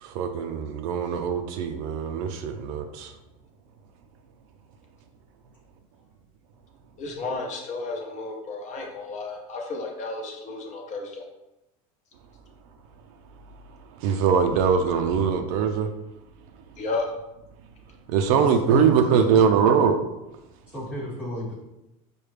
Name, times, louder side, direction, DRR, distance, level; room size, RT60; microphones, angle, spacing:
voice 1, 0.0-3.1 14.0-15.9 18.1-20.0, right 6 dB, 75° right, 5 dB, 0.4 m, -22 dB
voice 2, 7.0-11.2 16.8-17.1, left 3 dB, 40° left, 1 dB, 0.9 m, -32 dB
voice 3, 18.4-19.7 20.7-21.5, left 1 dB, 5° right, -9 dB, 1.2 m, -34 dB
4.9 x 2.2 x 3.2 m, 0.94 s
supercardioid pair, 125°, 18 cm